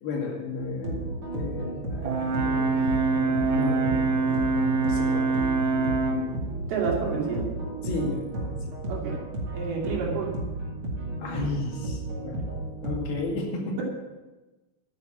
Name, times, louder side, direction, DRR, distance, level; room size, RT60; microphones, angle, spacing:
voice 1, 0.0-5.4 5.7-5.9 7.8-8.8 11.2-12.4 12.8-13.8, left 3 dB, 75° left, 0 dB, 4.1 m, -34 dB
sound 1, 0.6-13.2, right 2 dB, 40° right, 2.7 m, -33 dB
Brass instrument, 2.0-6.3, right 4 dB, 60° right, 1.3 m, -25 dB
voice 2, 6.7-7.5 8.9-9.2 9.5-10.3, right 5 dB, 80° right, -2 dB, 4.6 m, -29 dB
12.0 x 9.7 x 6.1 m, 1.1 s
omnidirectional pair, 4.4 m